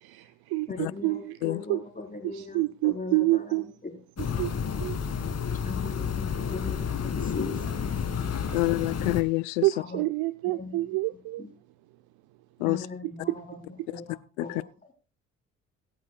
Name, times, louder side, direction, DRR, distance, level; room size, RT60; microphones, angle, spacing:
voice 1, 0.0-1.4 1.7-1.8 2.3-3.6 4.4-4.5 4.8-5.0 8.2-8.4 9.6-11.4, right 20 dB, 65° right, 0.8 m, -28 dB
voice 2, 0.7-4.0 5.6-7.7 9.7-10.0 10.4-11.0 11.4-11.5 12.6-14.7, left 3 dB, 20° left, 4.2 m, -40 dB
sound 1, 4.2-9.2, left 6 dB, 40° left, 2.1 m, -30 dB
voice 3, 8.5-9.7 12.6-12.8 14.4-14.5, left 23 dB, 80° left, 0.6 m, -26 dB
23.0 x 8.6 x 2.3 m
hypercardioid pair, 50°, 40 cm